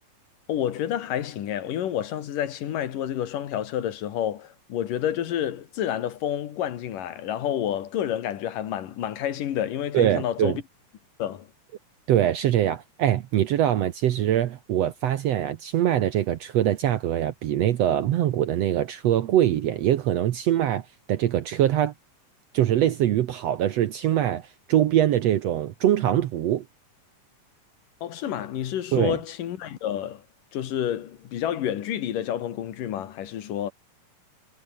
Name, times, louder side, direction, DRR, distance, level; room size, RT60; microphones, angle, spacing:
voice 1, 0.5-10.6 11.2-11.5 28.0-30.2 30.5-33.7, left 10 dB, 80° left, 3.3 m, -29 dB
voice 2, 9.9-10.6 12.1-20.8 21.1-21.9 22.5-26.6 28.9-29.2, right 11 dB, 65° right, 1.7 m, -23 dB
omnidirectional pair, 3.9 m